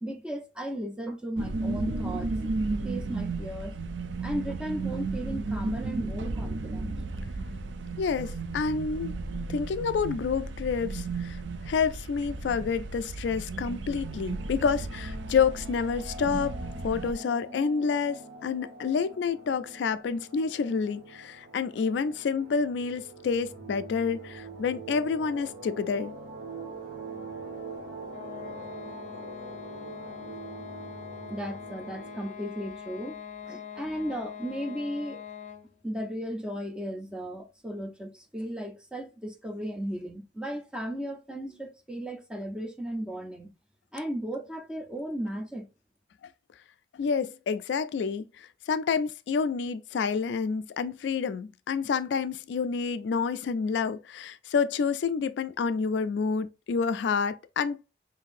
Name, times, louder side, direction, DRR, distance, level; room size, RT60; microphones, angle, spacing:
voice 1, 0.0-2.5 2.8-3.7 4.2-7.0 31.3-33.2 33.5-35.2 35.8-43.5 43.9-45.7, equal, 5° right, 0.6 m, -35 dB
sound 1, 1.4-17.1, right 3 dB, 80° right, 0.5 m, -34 dB
voice 2, 8.0-9.1 9.5-11.4 11.6-16.6 16.8-26.1 46.9-57.8, left 5 dB, 65° left, 0.3 m, -28 dB
sound 2, 14.0-32.3, right 3 dB, 65° right, 1.5 m, -44 dB
sound 3, 28.1-35.8, left 7 dB, 40° left, 0.6 m, -43 dB
5.7 x 2.6 x 2.5 m
head